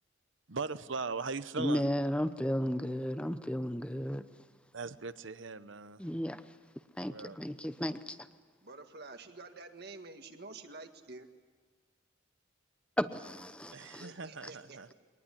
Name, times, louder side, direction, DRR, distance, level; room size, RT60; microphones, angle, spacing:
voice 1, 0.5-1.8 4.7-6.0 7.0-7.4 13.7-14.9, right 4 dB, 65° right, 13 dB, 0.9 m, -39 dB
voice 2, 1.6-4.2 6.0-6.4 7.0-8.2 13.0-14.1, equal, 5° left, 11 dB, 0.8 m, -34 dB
voice 3, 8.6-11.3 13.9-14.9, right 3 dB, 50° right, 6 dB, 1.8 m, -49 dB
23.5 x 19.5 x 10.0 m, 1.4 s
head